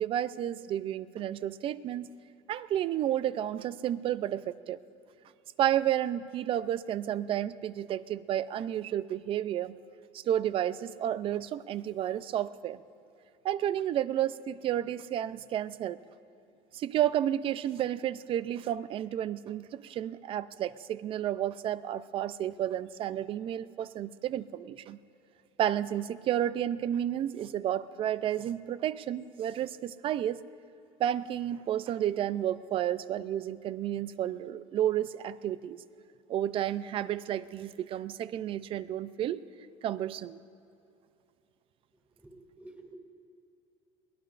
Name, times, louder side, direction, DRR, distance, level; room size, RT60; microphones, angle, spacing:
voice 1, 0.0-2.1 2.5-4.8 5.6-9.8 10.1-12.8 13.4-16.0 16.7-25.0 25.6-30.4 31.0-35.8 36.3-39.4 39.8-40.4, right 11 dB, 45° right, 16 dB, 0.5 m, -31 dB
voice 2, 42.2-43.0, right 2 dB, 15° right, 1 dB, 2.4 m, -50 dB
23.0 x 18.0 x 2.5 m, 2.8 s
cardioid pair, 120°, 13 cm